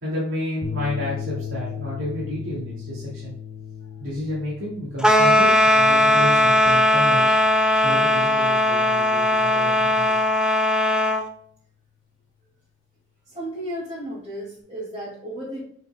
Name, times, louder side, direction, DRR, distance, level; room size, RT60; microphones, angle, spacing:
voice 1, 0.0-3.3 4.0-7.3 7.8-10.1, left 1 dB, 80° right, -7 dB, 2.6 m, -31 dB
sound 1, 0.6-9.1, left 8 dB, 65° left, 1.1 m, -37 dB
sound 2, 5.0-11.2, left 1 dB, 5° right, 0.5 m, -18 dB
voice 2, 13.3-15.6, equal, 25° right, -9 dB, 2.5 m, -33 dB
7.3 x 6.0 x 2.3 m, 0.64 s
head